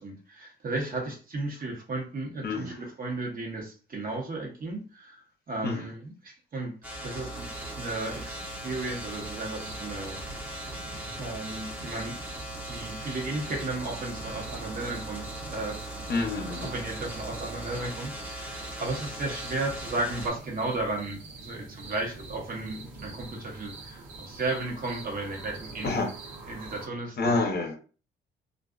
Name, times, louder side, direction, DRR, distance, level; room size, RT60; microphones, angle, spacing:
voice 1, 0.0-5.2 5.5-6.7 7.0-7.5 7.7-10.2 11.2-12.1 12.7-15.8 16.6-26.1 26.5-27.4, right 2 dB, 45° right, 1.0 m, -34 dB
voice 2, 2.4-2.9 5.6-5.9 16.1-16.8 25.8-26.1 27.2-27.8, left 3 dB, 55° left, 0.7 m, -28 dB
sound 1, 6.8-20.3, right 1 dB, 10° right, 0.8 m, -39 dB
sound 2, 7.3-26.9, right 3 dB, 75° right, 0.7 m, -45 dB
2.5 x 2.3 x 2.3 m
cardioid pair, 90°, 20 cm